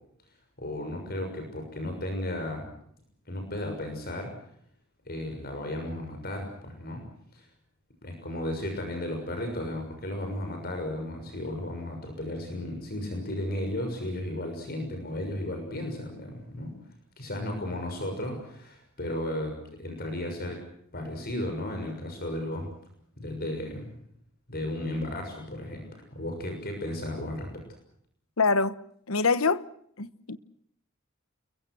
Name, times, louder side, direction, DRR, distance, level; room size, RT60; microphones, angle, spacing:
voice 1, 0.6-2.7 3.3-4.3 5.0-7.0 7.3-7.5 8.0-16.7 17.2-20.6 20.9-22.7 23.2-23.9 24.5-27.6, left 1 dB, 45° left, 6.5 m, -34 dB
voice 2, 28.4-28.8 29.1-29.6 30.0-30.4, left 4 dB, 85° left, 1.1 m, -24 dB
29.5 x 22.5 x 6.3 m
head